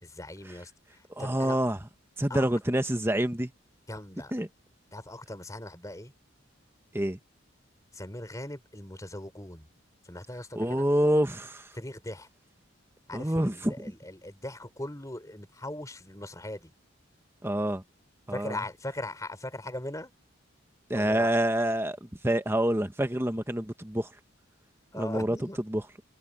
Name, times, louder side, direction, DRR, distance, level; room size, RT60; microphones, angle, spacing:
voice 1, 0.0-0.7 1.2-1.6 2.3-2.4 3.9-4.3 4.9-6.1 7.9-9.7 10.1-10.9 11.8-12.3 13.1-16.7 18.3-20.1 21.0-21.3 24.9-25.6, left 1 dB, 15° left, 3.8 m, -39 dB
voice 2, 1.1-1.9 2.2-3.5 4.3-4.5 6.9-7.2 10.5-11.7 13.1-13.9 17.4-17.8 18.3-18.6 20.9-24.1 24.9-25.4 25.7-25.8, right 1 dB, 10° right, 1.2 m, -27 dB
head